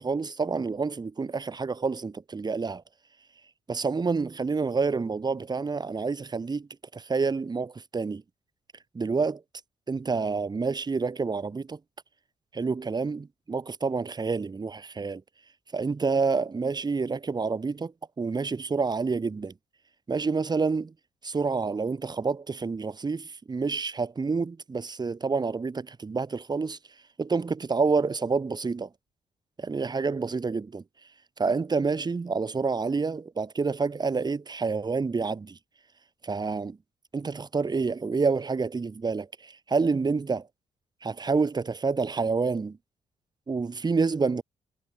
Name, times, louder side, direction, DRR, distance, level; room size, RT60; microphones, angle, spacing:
voice 1, 0.0-2.8 3.7-8.2 8.9-9.4 9.9-11.8 12.5-15.2 15.7-19.5 20.1-20.9 21.2-26.8 27.2-28.9 29.6-30.8 31.4-35.6 36.2-36.8 37.1-40.5 41.0-42.8 43.5-44.4, right 4 dB, 30° right, 1.1 m, -28 dB
hypercardioid pair, 40°, 14 cm